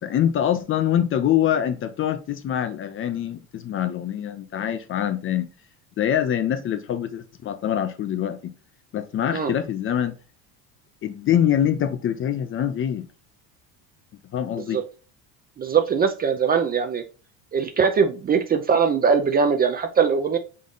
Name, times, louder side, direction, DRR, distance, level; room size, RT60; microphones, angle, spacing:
voice 1, 0.0-5.5 6.0-8.5 8.9-10.2 11.0-13.1 14.3-14.8, left 10 dB, 35° left, 0.5 m, -24 dB
voice 2, 15.6-17.0 17.5-20.4, right 6 dB, 25° right, 0.4 m, -21 dB
3.8 x 3.6 x 3.8 m
cardioid pair, 125°, 38 cm